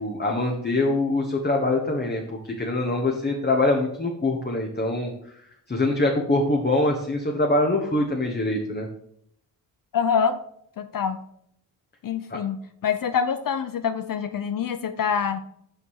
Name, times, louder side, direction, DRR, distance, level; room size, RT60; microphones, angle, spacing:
voice 1, 0.0-5.1 5.7-8.9 12.3-12.4, left 2 dB, 20° left, 1 dB, 1.2 m, -24 dB
voice 2, 9.9-10.4 10.8-11.2 12.0-15.4, left 7 dB, 45° left, 11 dB, 0.6 m, -25 dB
5.8 x 5.2 x 4.8 m, 0.71 s
supercardioid pair, 50°, 46 cm